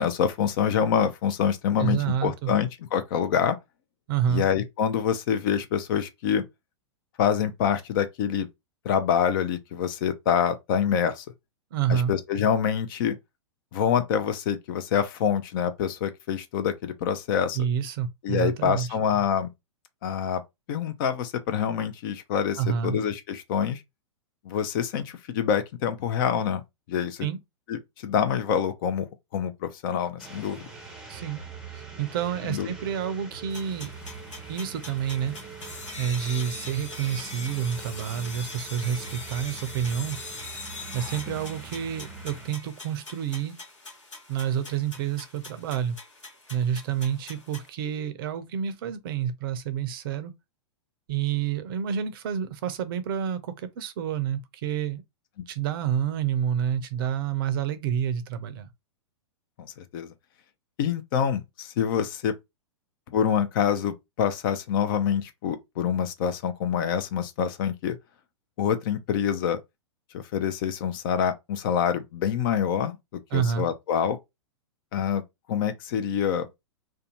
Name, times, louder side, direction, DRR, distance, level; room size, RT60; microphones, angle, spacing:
voice 1, 0.0-3.6 4.3-6.4 7.2-8.5 8.8-11.3 11.9-13.2 13.7-17.6 18.2-19.5 20.0-20.4 20.7-23.8 24.4-26.6 26.9-27.3 27.7-29.1 29.3-30.7 32.5-32.7 59.6-60.1 60.8-62.3 63.1-68.0 68.6-69.6 70.1-74.2 74.9-75.2 75.5-76.5, left 8 dB, 45° left, 0.5 m, -26 dB
voice 2, 1.8-2.5 4.1-4.4 11.7-12.1 17.5-18.9 22.6-23.0 27.2-27.4 31.1-31.4 31.7-33.9 34.5-35.3 36.0-40.2 40.9-43.6 44.3-46.0 46.5-50.3 51.1-55.0 55.5-58.7 73.3-73.7, right 8 dB, 50° right, 0.5 m, -28 dB
sound 1, 30.2-42.5, right 4 dB, 5° right, 0.7 m, -43 dB
sound 2, 33.5-47.7, left 3 dB, 85° left, 1.3 m, -42 dB
2.5 x 2.3 x 2.8 m
figure-of-eight pair, 105°, 15 cm